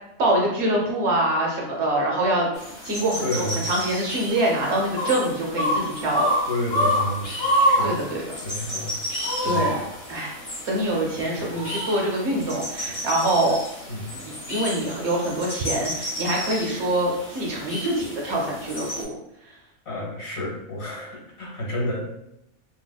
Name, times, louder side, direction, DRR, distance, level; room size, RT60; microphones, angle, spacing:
voice 1, 0.2-2.5 2.8-6.3 7.8-8.2 9.4-10.4 10.7-13.6 14.2-19.1, right 1 dB, 60° right, -2 dB, 0.9 m, -25 dB
sound 1, 2.6-19.0, equal, 25° left, 0.8 m, -29 dB
voice 2, 3.2-3.7 6.4-7.4 7.7-8.0 8.4-9.0 9.4-9.8 11.4-11.5 13.9-14.0 19.8-22.0, left 1 dB, 50° left, -3 dB, 1.2 m, -30 dB
3.3 x 2.7 x 2.2 m, 0.83 s
omnidirectional pair, 1.5 m